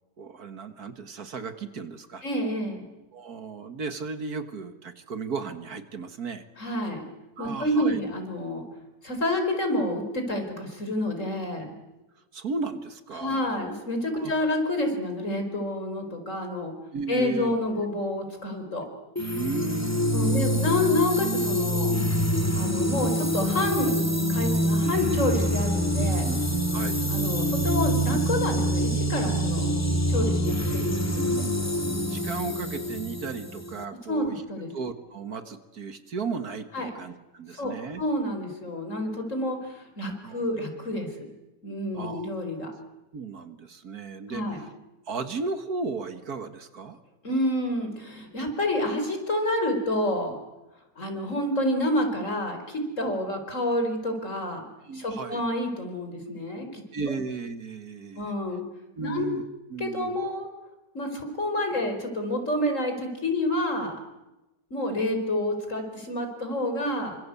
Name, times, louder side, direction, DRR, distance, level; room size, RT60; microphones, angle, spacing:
voice 1, 0.2-2.2 3.1-6.5 7.4-8.0 12.3-13.4 14.1-14.3 16.9-17.5 19.3-20.6 26.0-26.4 26.7-27.0 30.1-30.5 31.1-31.6 31.8-34.3 34.7-38.0 40.1-40.4 41.9-42.3 43.1-44.7 45.1-47.0 54.9-55.4 56.9-58.3 59.0-59.4 59.7-60.2, right 4 dB, 60° right, 9 dB, 2.0 m, -35 dB
voice 2, 2.2-2.9 6.6-7.0 7.4-8.6 9.0-11.7 13.2-16.7 17.1-18.9 20.1-21.9 22.5-26.2 27.1-29.7 30.1-31.4 34.1-34.7 36.7-36.9 37.6-41.1 41.6-42.7 44.3-44.6 47.2-50.4 51.0-54.7 54.9-56.8 58.2-58.6 59.0-59.3 59.8-60.5 60.9-64.0 64.7-67.2, left 1 dB, 45° left, 5 dB, 5.0 m, -28 dB
sound 1, 19.2-33.9, equal, 10° left, 2.2 m, -26 dB
28.0 x 25.5 x 8.4 m, 1.0 s
omnidirectional pair, 1.8 m